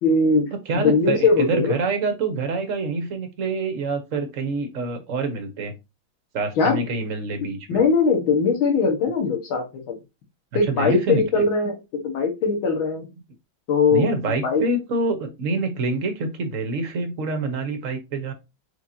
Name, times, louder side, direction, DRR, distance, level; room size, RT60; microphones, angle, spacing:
voice 1, 0.0-0.5 0.7-1.8 6.6-6.8 7.4-10.0 10.5-11.8 12.0-13.1 13.7-14.1 14.4-14.6, left 4 dB, 85° left, 3 dB, 2.1 m, -20 dB
voice 2, 0.7-5.7 6.3-7.8 10.7-11.4 13.9-18.3, right 3 dB, 50° right, 5 dB, 1.0 m, -26 dB
4.6 x 4.3 x 2.7 m, 0.25 s
omnidirectional pair, 2.2 m